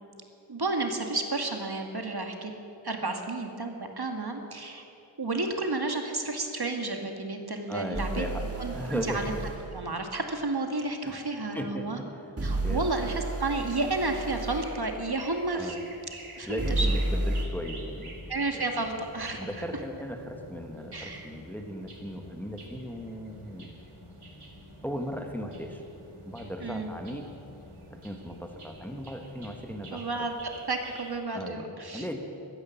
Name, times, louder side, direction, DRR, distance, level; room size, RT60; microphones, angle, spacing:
voice 1, 0.5-2.5 2.8-4.8 5.2-8.3 8.6-9.3 9.7-12.0 12.4-15.8 16.4-16.9 18.3-19.4 20.9-21.3 26.6-26.9 29.9-30.4 30.7-32.1, right 2 dB, 50° right, 4 dB, 1.7 m, -31 dB
voice 2, 7.7-9.2 11.0-12.3 12.6-13.1 15.5-15.8 16.5-18.1 18.5-18.6 19.4-23.7 24.8-25.8 26.3-27.3 27.9-30.3 31.3-32.2, equal, 5° left, 3 dB, 1.5 m, -37 dB
sound 1, 7.9-9.6 12.4-14.7 16.6-17.4, right 2 dB, 30° right, 1.9 m, -31 dB
sound 2, 13.3-31.2, right 2 dB, 90° right, 2.2 m, -50 dB
sound 3, 16.4-29.9, left 1 dB, 25° left, 4.6 m, -51 dB
15.0 x 13.0 x 7.1 m, 2.8 s
wide cardioid pair, 70°, 49 cm